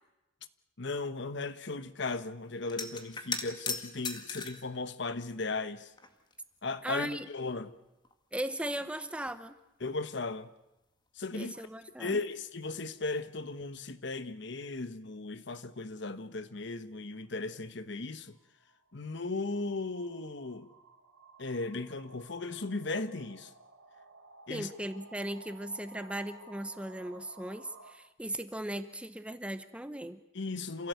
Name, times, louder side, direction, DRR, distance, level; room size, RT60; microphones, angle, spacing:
voice 1, 0.8-5.9 6.6-7.7 9.8-10.5 11.1-11.6 12.0-18.4 18.9-20.7 21.4-23.5 24.5-24.7 30.3-30.9, left 3 dB, 60° left, 1.1 m, -36 dB
sound 1, 2.7-4.7 5.5-6.3 6.6-6.7 8.0-8.1 8.5-9.5 13.1-13.3 13.6-13.8, left 4 dB, 20° left, 1.9 m, -39 dB
voice 2, 6.8-7.3 8.3-9.6 11.3-12.2 24.5-30.2, right 1 dB, 5° right, 0.9 m, -38 dB
sound 2, 16.0-16.1 18.2-27.9, right 3 dB, 90° right, 3.4 m, -56 dB
28.0 x 16.5 x 8.1 m
head